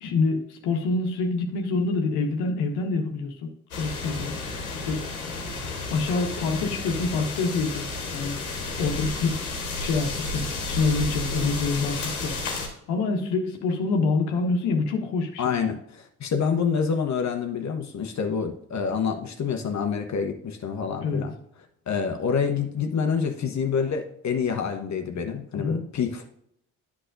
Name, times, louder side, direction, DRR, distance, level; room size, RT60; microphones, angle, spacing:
voice 1, 0.0-4.3 4.8-5.0 5.9-7.9 8.1-8.4 8.8-9.4 9.8-12.4 12.9-15.5 21.0-21.3 25.5-25.8, left 4 dB, 70° left, 4 dB, 1.3 m, -26 dB
sound 1, 3.7-12.7, left 3 dB, 85° left, 1.4 m, -32 dB
voice 2, 15.4-21.3 21.9-26.2, left 6 dB, 40° left, 5 dB, 1.0 m, -27 dB
9.9 x 6.1 x 2.6 m, 0.72 s
figure-of-eight pair, 45°, 41 cm